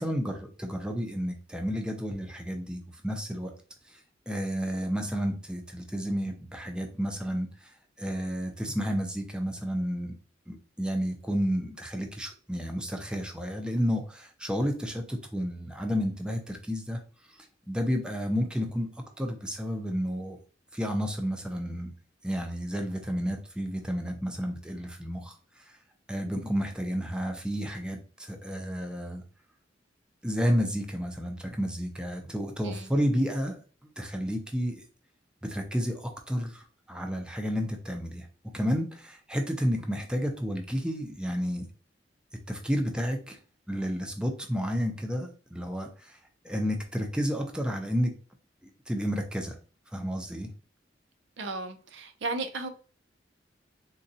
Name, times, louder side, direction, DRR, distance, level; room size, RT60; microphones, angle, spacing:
voice 1, 0.0-3.5 3.9-4.0 4.3-10.2 10.5-17.0 17.3-18.9 19.2-20.4 20.7-21.9 22.2-25.8 26.1-29.2 30.2-33.6 33.8-34.8 35.4-38.3 38.5-41.7 42.5-43.4 43.7-46.2 46.4-48.1 48.6-49.6 49.9-50.5, equal, 5° right, 0.5 m, -31 dB
voice 2, 51.4-52.7, right 3 dB, 75° right, 0.5 m, -34 dB
3.8 x 2.2 x 2.7 m
head